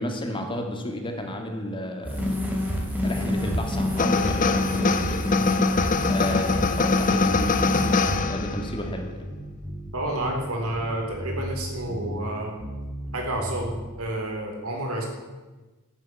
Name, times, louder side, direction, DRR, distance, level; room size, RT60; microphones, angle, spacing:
voice 1, 0.0-2.2 3.0-5.8 6.0-9.2, left 1 dB, 25° left, 3 dB, 2.1 m, -32 dB
sound 1, 2.0-8.2, left 1 dB, 10° right, 2.7 m, -27 dB
sound 2, 2.1-13.9, equal, 30° right, 3.0 m, -36 dB
sound 3, 4.0-8.8, left 4 dB, 40° left, 0.8 m, -24 dB
voice 2, 9.9-12.5 13.1-15.1, right 1 dB, 90° right, 1 dB, 3.7 m, -30 dB
12.0 x 8.1 x 9.4 m, 1.2 s
head